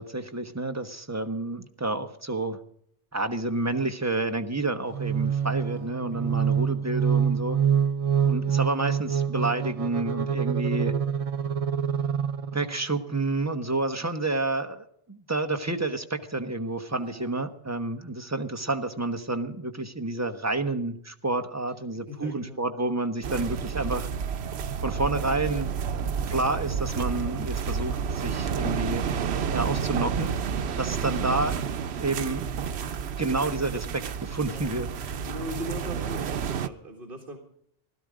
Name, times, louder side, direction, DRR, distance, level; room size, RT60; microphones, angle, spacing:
voice 1, 0.0-2.6 3.1-7.6 8.2-10.9 12.5-24.1 24.8-25.7 26.3-29.0 29.5-30.3 30.8-31.6 32.0-32.5 33.2-34.9, right 2 dB, 15° right, 7 dB, 1.0 m, -29 dB
sound 1, 4.9-12.8, right 8 dB, 40° right, 0.6 m, -26 dB
voice 2, 5.4-6.5 16.9-17.3 21.9-22.6 34.5-34.8 35.2-37.4, equal, 60° right, 2 dB, 2.0 m, -40 dB
sound 2, 23.2-36.7, right 7 dB, 85° right, 1.0 m, -30 dB
16.5 x 12.5 x 5.0 m, 0.68 s
omnidirectional pair, 1.0 m